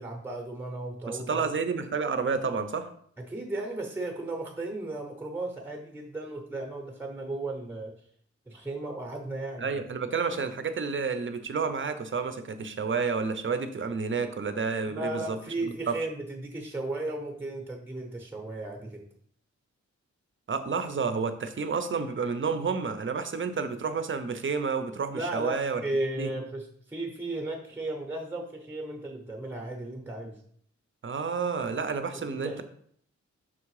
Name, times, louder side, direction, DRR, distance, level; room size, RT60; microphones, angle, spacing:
voice 1, 0.0-1.5 3.3-7.9 8.5-9.8 14.9-19.0 25.1-30.4 32.1-32.6, right 2 dB, 5° right, 3 dB, 0.8 m, -35 dB
voice 2, 1.1-2.9 9.6-15.4 15.9-16.0 20.5-25.8 26.2-26.3 31.0-32.6, right 5 dB, 45° right, 10 dB, 0.6 m, -30 dB
6.1 x 3.6 x 4.8 m, 0.63 s
wide cardioid pair, 145°, 29 cm